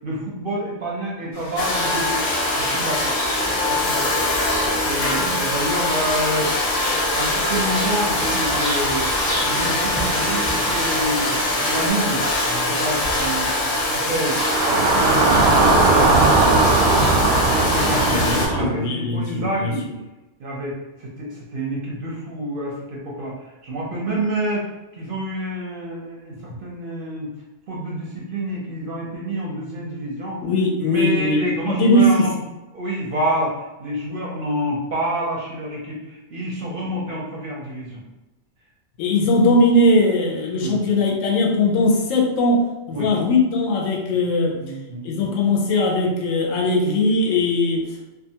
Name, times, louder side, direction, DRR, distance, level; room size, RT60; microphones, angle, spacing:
voice 1, 0.0-2.2 2.5-3.2 3.7-4.1 4.8-6.5 6.9-9.1 9.4-11.3 11.7-12.2 12.5-14.4 14.6-16.8 17.4-19.8 20.4-23.3 23.6-24.7 25.0-27.3 27.7-30.4 30.8-32.4 32.7-38.0 40.6-40.8 42.9-43.1 44.6-45.3, right 1 dB, 60° right, -4 dB, 0.6 m, -28 dB
sound 1, 1.3-11.9, equal, 15° left, 0.8 m, -31 dB
Domestic sounds home sounds, 1.6-18.5, left 1 dB, 60° left, 0.4 m, -23 dB
sound 2, 14.2-18.7, right 3 dB, 85° right, 1.0 m, -18 dB
voice 2, 17.8-19.8 30.4-32.3 39.0-44.6 45.0-48.1, left 1 dB, 90° left, 0 dB, 1.0 m, -20 dB
2.4 x 2.4 x 2.7 m, 1.1 s
omnidirectional pair, 1.3 m